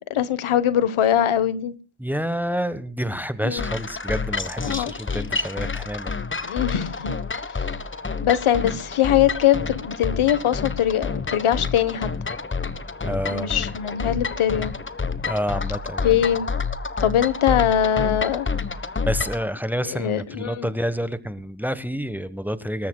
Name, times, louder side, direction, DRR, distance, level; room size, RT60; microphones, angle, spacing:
voice 1, 0.1-1.7 3.4-3.6 4.6-4.9 6.5-7.2 8.2-12.1 13.3-14.7 16.0-16.5 17.0-18.5 19.9-20.7, left 10 dB, 85° left, 1.3 m, -22 dB
voice 2, 2.0-6.6 13.0-13.5 15.2-16.2 19.0-22.9, equal, 5° right, 1.3 m, -28 dB
sound 1, 3.6-19.5, left 4 dB, 25° left, 1.2 m, -29 dB
27.5 x 13.5 x 2.3 m
cardioid pair, 80°, 48 cm